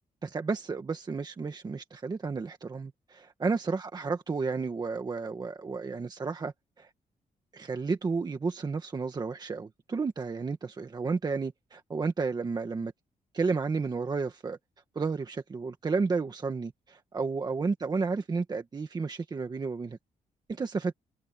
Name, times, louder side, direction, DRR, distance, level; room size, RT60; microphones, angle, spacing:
voice 1, 0.2-6.9 7.5-12.9 13.3-14.6 14.9-20.0 20.5-20.9, right 4 dB, 30° right, 1.6 m, -32 dB
wide cardioid pair, 160°, 15 cm